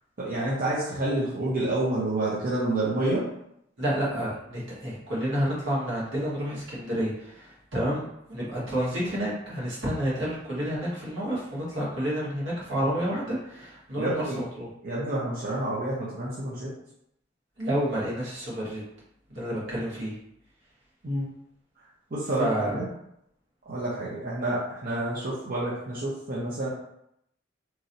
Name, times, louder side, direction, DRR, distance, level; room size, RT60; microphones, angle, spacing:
voice 1, 0.2-3.3 13.9-14.4 14.8-16.7 21.0-21.3 22.1-22.9 23.7-26.7, right 1 dB, 50° right, -7 dB, 0.7 m, -28 dB
voice 2, 3.8-14.7 17.6-18.8 19.3-20.2 22.4-22.8, equal, 75° right, -7 dB, 1.4 m, -29 dB
3.0 x 2.7 x 2.6 m, 0.77 s
head